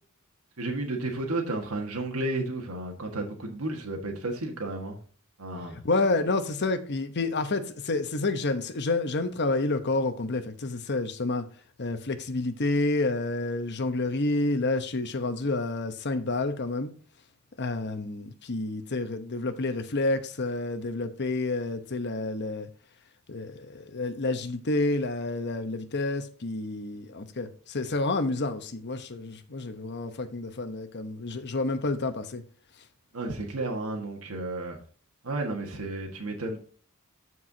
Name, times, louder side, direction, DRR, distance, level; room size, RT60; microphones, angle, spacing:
voice 1, 0.6-5.0 5.4-5.8 33.1-34.8 35.2-36.6, right 2 dB, 85° right, 1.6 m, -32 dB
voice 2, 5.8-11.5 11.8-16.9 17.6-22.7 23.3-32.4, left 2 dB, 50° left, 0.9 m, -29 dB
13.5 x 4.7 x 2.7 m
head